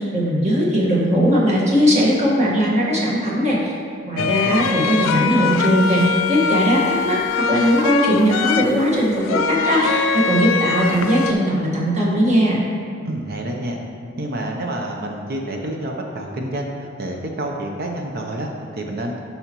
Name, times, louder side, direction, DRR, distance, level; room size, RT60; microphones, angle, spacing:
voice 1, 0.0-3.7 4.1-7.2 7.5-12.6, equal, 35° right, -4 dB, 1.5 m, -19 dB
sound 1, 4.2-11.3, left 6 dB, 85° left, 0.4 m, -23 dB
voice 2, 4.2-4.7 13.0-13.8 14.2-19.2, right 1 dB, 50° right, 1 dB, 0.7 m, -28 dB
10.5 x 5.6 x 3.0 m, 2.4 s
head